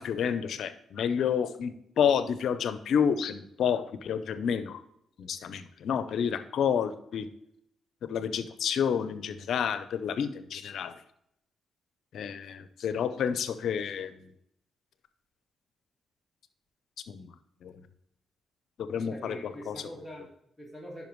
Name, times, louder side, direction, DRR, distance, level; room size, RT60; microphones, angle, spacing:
voice 1, 0.0-4.8 5.2-7.3 8.0-11.0 12.1-14.3 17.1-17.3 17.6-17.7 18.8-19.8, left 7 dB, 75° left, 12 dB, 0.6 m, -29 dB
voice 2, 18.9-21.1, equal, ahead, -4 dB, 2.1 m, -44 dB
10.0 x 5.5 x 3.1 m, 0.76 s
cardioid pair, 75°, 0 cm